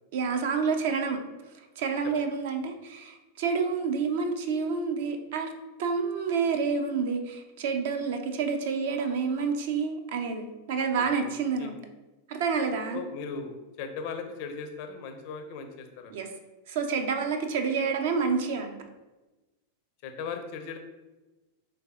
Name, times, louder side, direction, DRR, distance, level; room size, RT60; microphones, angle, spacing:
voice 1, 0.1-1.2 1.8-5.5 5.8-11.8 12.3-13.0 16.1-16.3 16.7-18.8, right 5 dB, 55° right, 5 dB, 0.4 m, -28 dB
voice 2, 11.0-11.7 12.9-16.3 20.0-20.8, left 5 dB, 45° left, 6 dB, 0.4 m, -38 dB
3.9 x 3.2 x 2.3 m, 1.1 s
figure-of-eight pair, 90°, 0 cm